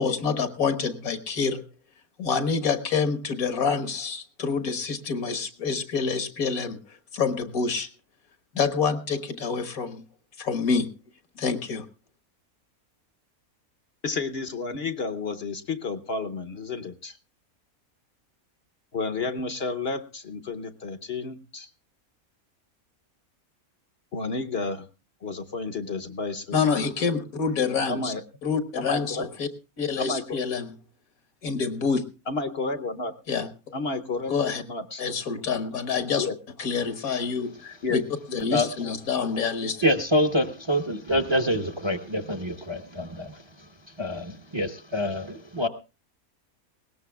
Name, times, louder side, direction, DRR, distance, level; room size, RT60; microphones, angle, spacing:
voice 1, 0.0-1.6 2.2-7.9 8.5-10.0 10.4-10.9 11.4-11.9 26.5-28.1 28.4-29.5 29.8-30.7 31.4-32.0 33.3-33.5 34.3-34.6 35.0-36.3 36.6-38.0 38.3-39.9, left 5 dB, 75° left, 10 dB, 1.8 m, -27 dB
voice 2, 14.0-17.2 18.9-21.7 24.1-24.9 25.2-26.6 27.9-28.2 28.9-29.3 30.0-30.4 32.3-33.1 33.7-34.4 34.7-35.0 36.2-36.4 37.8-38.0 38.3-38.4 38.8-38.9, left 3 dB, 50° left, 10 dB, 1.0 m, -31 dB
voice 3, 39.8-43.7 44.0-45.7, equal, 25° right, 9 dB, 0.8 m, -26 dB
20.5 x 18.0 x 2.3 m, 0.32 s
omnidirectional pair, 1.5 m